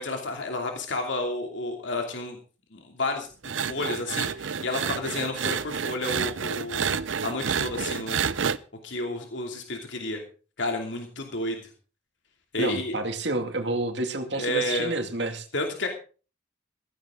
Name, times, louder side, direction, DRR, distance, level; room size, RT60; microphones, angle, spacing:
voice 1, 0.0-2.4 2.7-7.0 7.2-8.2 8.8-10.2 10.6-11.6 12.5-13.0 14.3-14.9 15.5-15.9, left 2 dB, 75° left, 2 dB, 2.8 m, -31 dB
sound 1, 3.4-8.6, right 7 dB, 85° right, 0.7 m, -29 dB
voice 2, 12.6-15.4, right 2 dB, 65° right, 5 dB, 2.4 m, -29 dB
15.5 x 15.5 x 3.8 m, 0.38 s
head